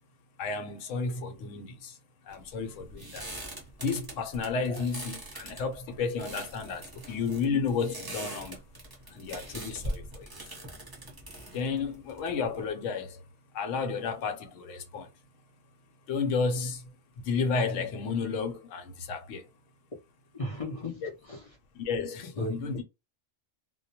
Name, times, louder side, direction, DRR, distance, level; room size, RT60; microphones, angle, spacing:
voice 1, 0.4-2.0 2.2-3.3 3.8-8.6 9.1-10.3 11.5-13.2 13.5-15.1 16.1-16.9 17.2-19.5 21.0-21.1 21.7-22.8, left 5 dB, 75° left, 0.9 m, -32 dB
sound 1, 2.3-12.7, right 1 dB, 20° right, 0.6 m, -42 dB
voice 2, 20.3-21.5 22.4-22.8, left 1 dB, 45° left, 0.4 m, -37 dB
2.2 x 2.1 x 2.7 m
omnidirectional pair, 1.3 m